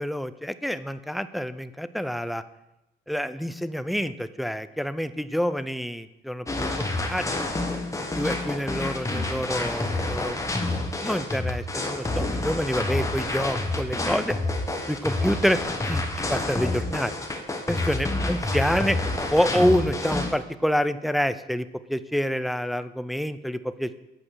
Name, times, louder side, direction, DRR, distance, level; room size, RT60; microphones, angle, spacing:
voice 1, 0.0-2.4 3.1-7.4 8.1-10.4 10.8-14.4 14.9-16.0 16.3-17.1 17.7-19.0 19.3-23.9, equal, ahead, 13 dB, 0.4 m, -27 dB
sound 1, 6.5-20.3, left 2 dB, 15° left, 1.2 m, -28 dB
8.6 x 5.2 x 6.2 m, 0.96 s
cardioid pair, 90°, 20 cm